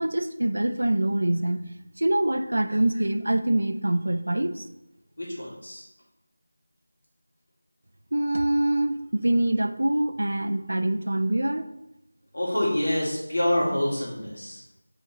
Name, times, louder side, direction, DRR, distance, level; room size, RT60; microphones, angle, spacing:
voice 1, 0.0-1.6 2.0-4.7 8.1-11.7, right 1 dB, 80° right, 9 dB, 0.5 m, -24 dB
voice 2, 5.2-5.8 12.3-14.6, left 1 dB, 60° left, -4 dB, 2.2 m, -26 dB
8.0 x 4.1 x 3.1 m, 0.88 s
figure-of-eight pair, 180°, 0 cm